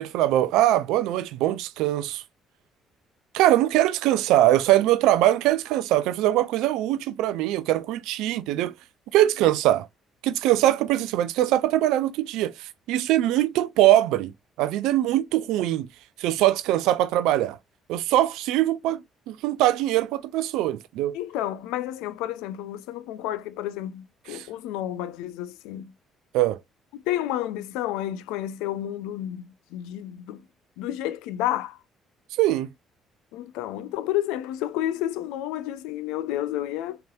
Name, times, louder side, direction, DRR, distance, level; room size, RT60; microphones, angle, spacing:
voice 1, 0.0-2.2 3.3-8.7 9.1-9.9 10.2-14.3 14.6-15.9 16.2-17.6 17.9-21.2 24.3-24.5 26.3-26.6 32.4-32.7, right 14 dB, 70° right, 0.4 m, -22 dB
voice 2, 21.1-25.9 26.9-30.4 30.8-31.8 33.3-37.0, left 13 dB, 75° left, 0.3 m, -30 dB
4.5 x 2.9 x 2.3 m
hypercardioid pair, 50°, 0 cm